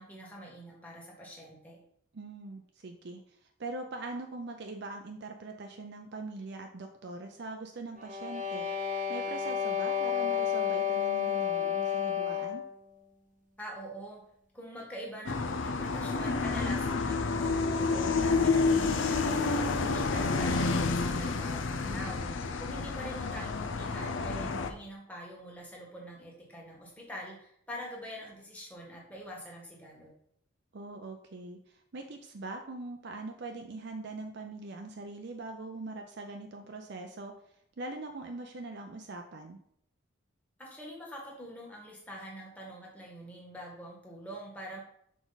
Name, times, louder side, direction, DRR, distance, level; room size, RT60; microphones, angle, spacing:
voice 1, 0.0-1.8 13.6-14.2 14.5-22.2 22.6-30.1 40.6-44.8, equal, 5° left, -3 dB, 1.5 m, -44 dB
voice 2, 2.1-8.7 9.1-12.6 21.7-22.2 30.7-37.3 37.8-39.6, right 2 dB, 50° right, 3 dB, 0.5 m, -42 dB
sound 1, 8.0-12.7, left 8 dB, 35° right, 1.0 m, -31 dB
sound 2, 15.3-24.7, left 4 dB, 60° left, 0.5 m, -29 dB
6.1 x 4.6 x 4.0 m, 0.70 s
head